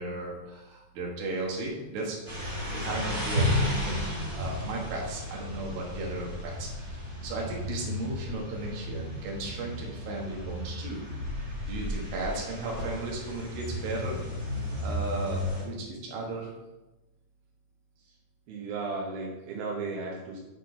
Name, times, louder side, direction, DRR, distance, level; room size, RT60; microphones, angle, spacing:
voice 1, 0.0-2.2 2.7-4.1 4.3-11.0 11.7-14.2 14.5-16.5, right 2 dB, 75° right, -2 dB, 3.2 m, -35 dB
sound 1, 2.3-15.6, left 1 dB, 45° right, 1.1 m, -33 dB
voice 2, 18.5-20.4, right 3 dB, 90° right, -2 dB, 3.0 m, -35 dB
6.9 x 4.3 x 5.6 m, 1.0 s
omnidirectional pair, 4.2 m